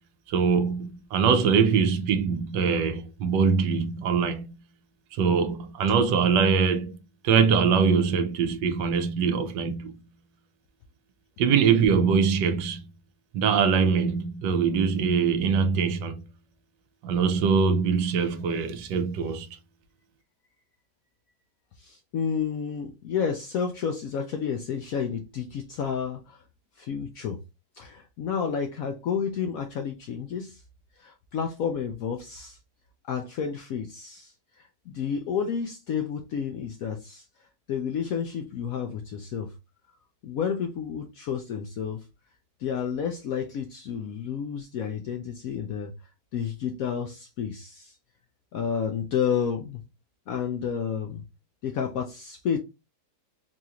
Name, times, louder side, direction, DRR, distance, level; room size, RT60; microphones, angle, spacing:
voice 1, 0.3-4.5 5.1-7.0 7.2-9.9 11.4-12.8 13.3-16.2 17.0-19.5, right 6 dB, 80° right, 1.2 m, -23 dB
voice 2, 21.8-26.4 26.8-27.4 27.8-30.6 31.0-32.6 33.1-37.3 37.7-39.5 40.2-42.1 42.6-45.9 46.3-48.0 48.5-49.8 50.3-51.2 51.6-52.6, left 7 dB, 70° left, 0.8 m, -30 dB
4.1 x 2.4 x 2.8 m
omnidirectional pair, 1.9 m